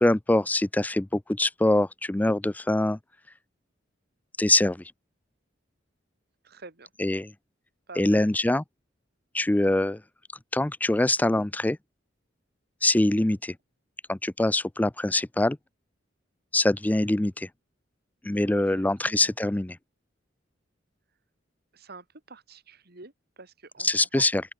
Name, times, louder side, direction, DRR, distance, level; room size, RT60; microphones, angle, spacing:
voice 1, 0.0-3.0 4.4-4.8 7.0-7.3 8.0-8.6 9.3-10.0 10.5-11.8 12.8-13.5 14.1-15.6 16.5-17.5 18.2-19.8 23.8-24.4, left 1 dB, 10° left, 0.4 m, -24 dB
voice 2, 6.4-6.9 7.9-8.2 18.7-19.3 21.7-23.9 24.1-24.3, right 3 dB, 55° right, 2.7 m, -47 dB
open air
head